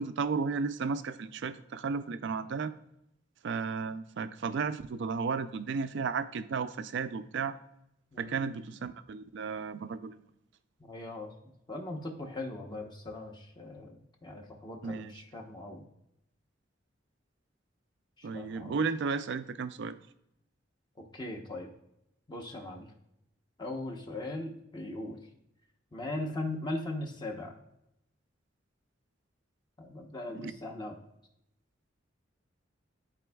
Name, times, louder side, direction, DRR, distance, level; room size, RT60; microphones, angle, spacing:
voice 1, 0.0-2.7 3.4-7.6 8.2-10.2 14.8-15.2 18.2-20.0 30.3-30.5, right 5 dB, 65° right, 12 dB, 0.4 m, -34 dB
voice 2, 10.8-11.3 11.7-15.8 18.2-18.8 21.1-21.7 22.3-22.9 23.6-25.2 25.9-27.5 29.8-31.0, left 2 dB, 25° left, 1 dB, 0.8 m, -39 dB
12.5 x 4.3 x 2.3 m, 0.82 s
head